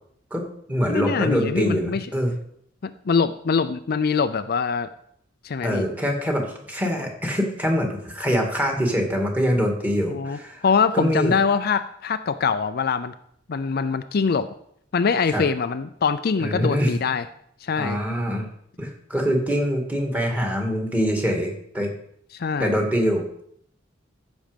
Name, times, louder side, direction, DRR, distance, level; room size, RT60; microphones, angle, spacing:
voice 1, 0.3-2.3 5.6-10.6 10.9-11.4 15.3-15.4 16.4-17.0 17.8-18.5 18.8-21.9 22.6-23.2, equal, 10° right, 1 dB, 2.2 m, -24 dB
voice 2, 0.9-2.1 2.8-4.9 5.4-5.8 10.1-13.1 13.5-14.5 14.9-17.3 17.6-18.0 22.3-22.8, left 5 dB, 55° left, 11 dB, 0.5 m, -23 dB
14.5 x 6.2 x 5.1 m, 0.69 s
head